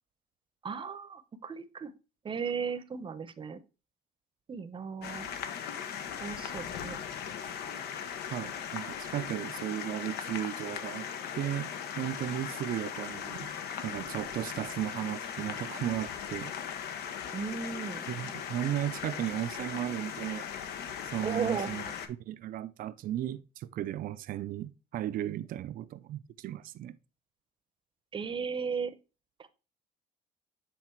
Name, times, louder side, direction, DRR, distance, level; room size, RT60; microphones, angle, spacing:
voice 1, 0.6-1.9 2.2-3.6 4.5-5.3 6.2-7.0 17.3-18.0 21.2-21.7 28.1-28.9 29.4-29.5, right 6 dB, 30° right, 0.8 m, -35 dB
sound 1, 5.0-22.1, left 8 dB, 70° left, 0.9 m, -39 dB
voice 2, 8.3-11.1 11.3-13.5 13.8-16.5 18.1-20.5 21.1-21.8 22.3-27.0, right 12 dB, 55° right, 0.5 m, -35 dB
7.7 x 3.5 x 4.5 m
cardioid pair, 110°, 17 cm